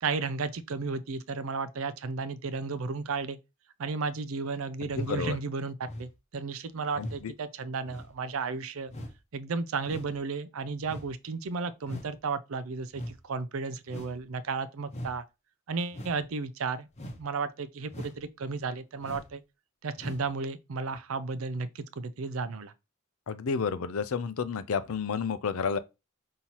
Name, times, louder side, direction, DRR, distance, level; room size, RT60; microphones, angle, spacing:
voice 1, 0.0-3.4 3.8-8.9 9.3-15.2 15.7-19.4 19.8-22.7, right 4 dB, 75° right, 0.5 m, -33 dB
voice 2, 4.8-5.4 7.0-7.3 23.3-25.8, left 5 dB, 90° left, 0.5 m, -31 dB
sound 1, 4.9-5.2 5.8-6.2 6.9-7.2 7.8-8.1 8.9-9.2 9.8-10.2 10.8-11.1 11.8-12.1 12.9-13.2 13.9-14.2 14.9-15.2 15.9-16.2 16.9-17.2 17.9-18.2 19.0-19.3 20.0-20.3 20.9-21.0, equal, 35° left, 0.9 m, -41 dB
5.5 x 2.7 x 3.0 m
head